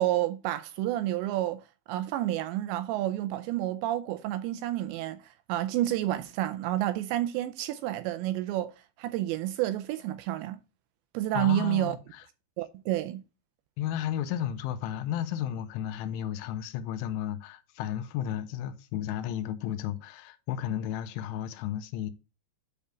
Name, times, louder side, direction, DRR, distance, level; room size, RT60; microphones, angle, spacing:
voice 1, 0.0-10.6 11.1-12.0 12.6-13.2, right 14 dB, 85° right, 2.6 m, -30 dB
voice 2, 11.3-12.2 13.8-22.1, left 11 dB, 85° left, 3.1 m, -33 dB
9.2 x 3.5 x 6.9 m
omnidirectional pair, 5.5 m